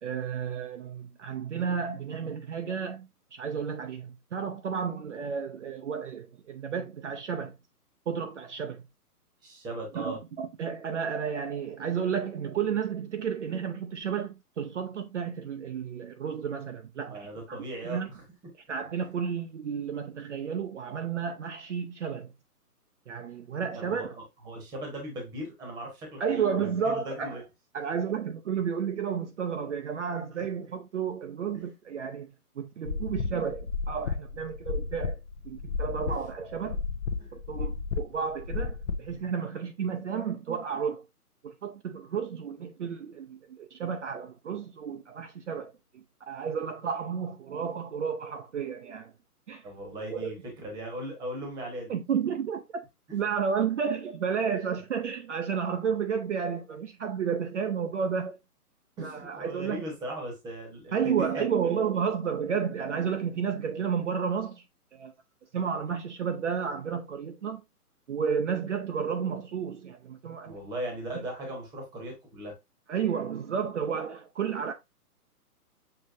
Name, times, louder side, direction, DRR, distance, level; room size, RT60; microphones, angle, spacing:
voice 1, 0.0-7.6 8.1-8.8 10.0-18.1 18.7-22.3 23.1-24.1 26.2-27.4 27.7-35.2 35.4-36.8 37.3-41.0 41.4-49.1 49.5-50.3 51.9-52.6 53.1-58.4 59.0-59.8 60.9-64.6 64.9-65.1 65.5-67.6 68.1-70.6 71.1-71.3 72.9-74.7, right 7 dB, 50° right, 0.6 m, -32 dB
voice 2, 9.4-10.2 17.1-18.2 23.7-27.4 30.3-30.5 31.5-31.7 36.1-36.2 37.2-37.4 49.6-51.9 53.1-53.2 59.0-61.4 70.4-72.5, right 1 dB, 10° right, 1.0 m, -38 dB
sound 1, 32.9-39.1, left 5 dB, 50° left, 0.6 m, -33 dB
6.6 x 3.1 x 2.5 m
hypercardioid pair, 145°, 47 cm